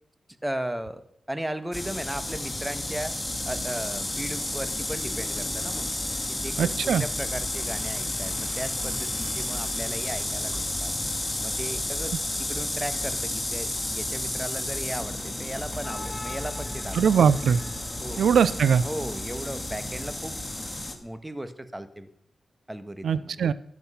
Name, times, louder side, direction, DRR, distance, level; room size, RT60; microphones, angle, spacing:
voice 1, 0.4-1.0 1.3-3.2 3.5-5.9 6.3-10.9 11.4-17.0 18.0-18.3 18.8-22.1 22.7-23.4, right 1 dB, 10° right, 11 dB, 1.5 m, -36 dB
sound 1, 1.7-20.9, left 1 dB, 15° left, 2.4 m, -31 dB
voice 2, 6.6-7.0 16.9-17.6 18.2-18.8 23.0-23.5, right 7 dB, 90° right, 17 dB, 0.5 m, -21 dB
13.0 x 10.5 x 5.7 m, 0.71 s
cardioid pair, 75°, 0 cm